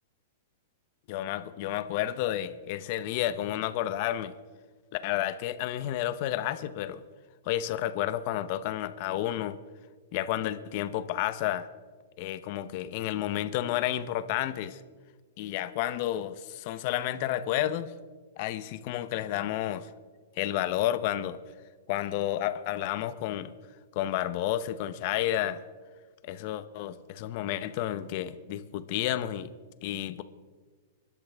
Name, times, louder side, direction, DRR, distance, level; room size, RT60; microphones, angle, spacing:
voice 1, 1.1-4.3 4.9-7.0 7.5-9.6 10.1-11.7 12.2-14.8 15.4-17.9 18.4-19.9 20.4-21.4 21.9-23.5 23.9-25.6 26.2-29.5 29.8-30.2, left 12 dB, 40° left, 13 dB, 0.7 m, -31 dB
26.5 x 12.0 x 3.5 m, 1.5 s
supercardioid pair, 165°, 0 cm